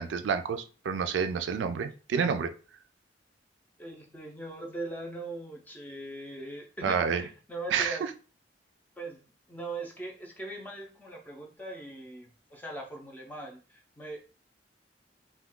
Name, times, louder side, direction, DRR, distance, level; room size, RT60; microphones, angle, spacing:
voice 1, 0.0-2.5 6.8-7.2 7.7-8.0, right 6 dB, 85° right, 0.3 m, -29 dB
voice 2, 3.8-8.0 9.0-9.2 9.5-14.2, right 2 dB, 10° left, 0.5 m, -40 dB
2.3 x 2.2 x 3.6 m
head